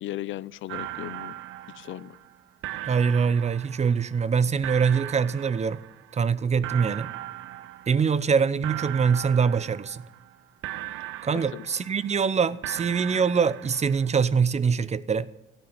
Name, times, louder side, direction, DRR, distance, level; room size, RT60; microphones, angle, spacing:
voice 1, 0.0-1.4 1.7-2.2 11.3-11.6, left 14 dB, 75° left, 0.5 m, -36 dB
sound 1, 0.7-2.4 2.6-4.3 4.6-6.3 6.6-8.4 8.6-10.4 10.6-12.3 12.6-14.3, right 15 dB, 90° right, 0.6 m, -38 dB
voice 2, 2.8-5.8 6.1-7.1 7.9-10.0 11.2-15.3, right 6 dB, 35° right, 0.6 m, -24 dB
14.0 x 9.1 x 9.6 m
cardioid pair, 90°, 20 cm